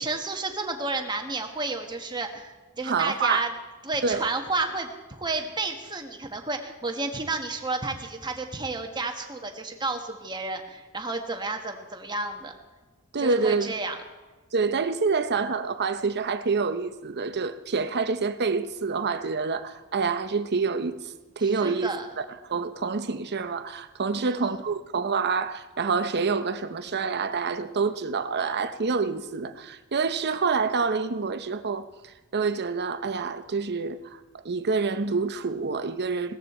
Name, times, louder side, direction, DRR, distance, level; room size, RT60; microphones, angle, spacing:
voice 1, 0.0-3.5 3.8-4.9 5.2-12.5 13.2-14.0 21.6-22.1 24.2-24.5, right 3 dB, 20° right, 1.5 m, -31 dB
voice 2, 2.8-3.5 4.0-4.3 13.1-13.7 14.5-36.4, right 4 dB, 50° right, 0.8 m, -27 dB
17.5 x 14.0 x 4.4 m
head